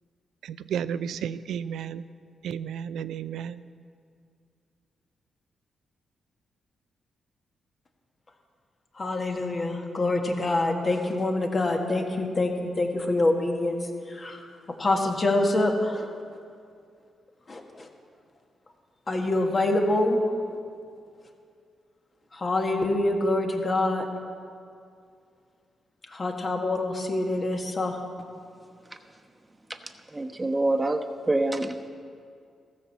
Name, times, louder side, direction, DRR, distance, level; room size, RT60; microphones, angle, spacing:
voice 1, 0.4-2.0 2.4-3.6, right 8 dB, 80° right, 15 dB, 0.4 m, -32 dB
voice 2, 9.0-13.8 14.1-16.1 17.5-17.9 19.1-20.2 22.3-24.1 26.1-28.0, left 2 dB, 45° left, 2 dB, 1.7 m, -26 dB
voice 3, 30.1-31.0 31.3-31.9, right 2 dB, 25° right, 6 dB, 1.1 m, -25 dB
14.5 x 6.4 x 7.0 m, 2.3 s
supercardioid pair, 50°, 0 cm